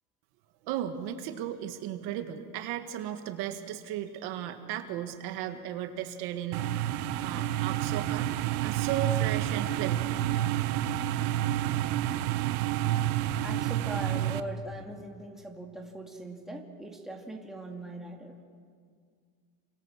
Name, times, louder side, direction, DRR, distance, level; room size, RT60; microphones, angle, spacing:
voice 1, 0.6-10.2, right 10 dB, 55° right, 6 dB, 2.0 m, -36 dB
sound 1, 6.5-14.4, right 13 dB, 70° right, 1.2 m, -29 dB
voice 2, 13.4-18.4, right 1 dB, ahead, 0 dB, 2.5 m, -41 dB
29.5 x 27.0 x 7.5 m, 2.1 s
supercardioid pair, 150°, 46 cm